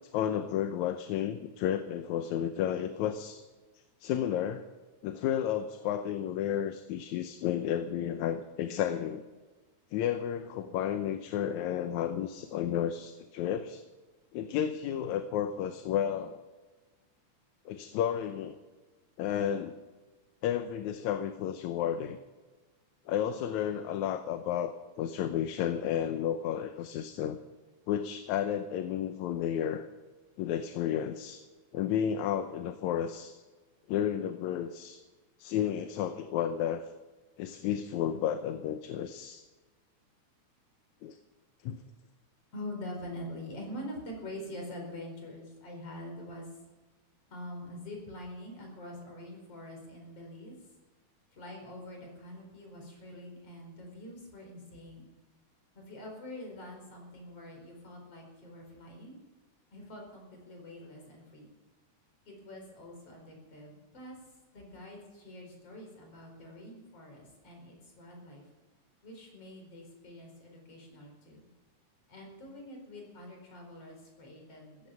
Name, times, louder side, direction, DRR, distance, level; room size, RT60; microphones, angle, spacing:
voice 1, 0.1-3.4 4.0-4.7 5.0-9.2 9.9-13.8 14.3-16.4 17.7-18.6 19.2-19.8 20.4-22.2 23.1-24.7 25.0-27.4 27.9-29.9 30.4-31.4 31.7-33.4 33.9-35.0 35.4-36.9 37.4-39.4 41.0-41.2 41.6-41.8, left 9 dB, 80° left, 8 dB, 2.1 m, -32 dB
voice 2, 42.5-46.5 47.3-50.6 51.3-55.1 55.7-59.2 59.7-61.5 62.3-64.2 64.5-68.5 69.0-71.5 72.1-74.9, left 1 dB, 50° left, 1 dB, 5.6 m, -45 dB
15.5 x 14.0 x 5.7 m, 1.2 s
omnidirectional pair, 3.4 m